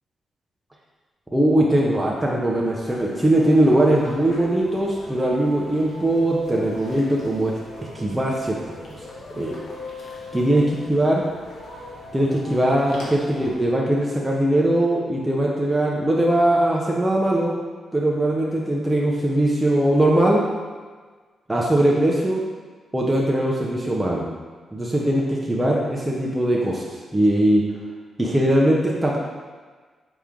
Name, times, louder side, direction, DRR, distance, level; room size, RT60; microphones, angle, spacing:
voice 1, 1.3-7.6 7.9-8.6 9.3-9.6 10.3-10.6 10.9-11.2 12.1-17.5 17.9-20.4 21.5-22.4 22.9-24.3 24.7-26.8 27.1-27.6 28.2-29.2, right 1 dB, 10° right, -3 dB, 0.6 m, -20 dB
sound 1, 2.5-13.6, left 1 dB, 70° left, 1.1 m, -39 dB
5.0 x 3.0 x 3.6 m, 1.4 s
cardioid pair, 95°, 0 cm